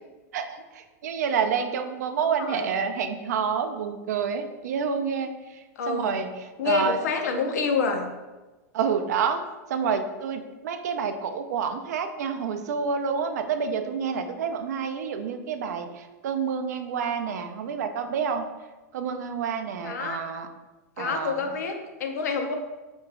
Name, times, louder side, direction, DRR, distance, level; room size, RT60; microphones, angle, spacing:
voice 1, 0.3-7.0 8.7-9.4 9.7-18.5 18.9-20.5 21.0-21.4, right 6 dB, 80° right, 7 dB, 0.3 m, -28 dB
voice 2, 2.2-2.7 5.8-6.2 6.6-8.1 19.8-20.2 21.0-22.5, left 4 dB, 80° left, 4 dB, 0.5 m, -27 dB
2.9 x 2.3 x 3.5 m, 1.2 s
hypercardioid pair, 130°, 9 cm